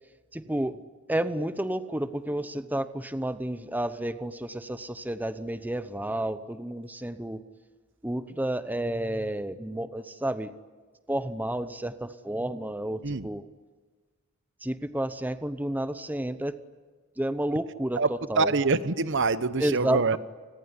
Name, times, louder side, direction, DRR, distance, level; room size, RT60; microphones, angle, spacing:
voice 1, 0.3-7.5 8.0-10.5 11.1-13.5 14.6-16.6 17.2-18.5 19.6-20.2, right 1 dB, 10° right, 12 dB, 0.9 m, -31 dB
voice 2, 18.4-20.2, right 4 dB, 55° right, 14 dB, 1.0 m, -25 dB
29.5 x 21.0 x 9.7 m, 1.4 s
head